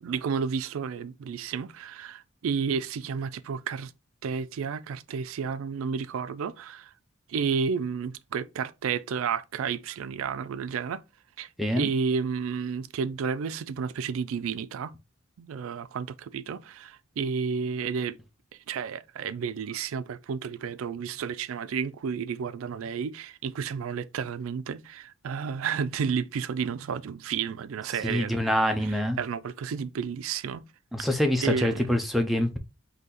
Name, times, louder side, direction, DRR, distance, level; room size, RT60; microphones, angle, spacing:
voice 1, 0.0-3.9 4.2-6.9 7.3-11.0 11.4-11.5 11.8-14.9 15.4-18.2 18.7-28.4 28.8-30.6 31.4-31.9, right 6 dB, 80° right, 0.3 m, -31 dB
voice 2, 11.6-11.9 28.0-29.2 30.9-32.6, left 1 dB, ahead, 0.5 m, -25 dB
3.9 x 2.8 x 4.0 m
head